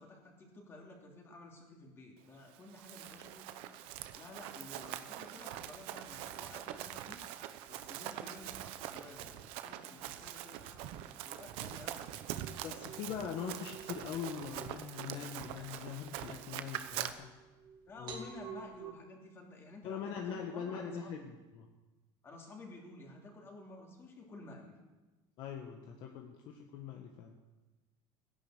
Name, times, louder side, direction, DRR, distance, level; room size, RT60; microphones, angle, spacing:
voice 1, 0.0-12.1 17.9-21.1 22.2-24.8, left 2 dB, 25° left, 0 dB, 2.8 m, -53 dB
Run, 2.5-17.1, right 12 dB, 65° right, 1.0 m, -44 dB
sound 1, 12.4-18.9, right 6 dB, 40° right, 2.3 m, -52 dB
voice 2, 12.6-17.3 18.0-18.3 19.8-21.7 25.4-27.3, left 7 dB, 45° left, 2 dB, 1.5 m, -42 dB
15.5 x 11.0 x 7.8 m, 1.2 s
cardioid pair, 160°, 11 cm